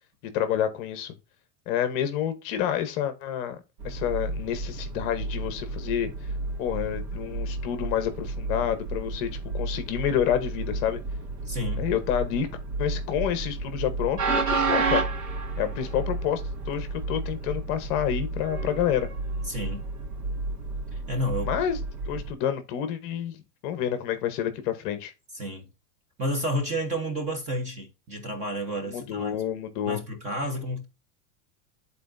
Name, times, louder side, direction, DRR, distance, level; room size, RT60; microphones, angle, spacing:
voice 1, 0.3-1.2 1.7-6.1 6.6-9.3 9.5-11.0 11.8-12.5 12.8-15.1 15.6-19.1 21.5-21.8 22.1-23.4 23.6-25.1 28.9-30.0, left 10 dB, 35° left, 0.9 m, -28 dB
Train, 3.8-22.3, right 3 dB, 85° right, 2.5 m, -31 dB
voice 2, 11.5-11.9 19.4-19.9 20.9-21.5 25.3-25.7 26.2-29.3 29.8-30.9, equal, 15° right, 0.9 m, -31 dB
11.0 x 4.1 x 2.5 m
supercardioid pair, 170°, 45 cm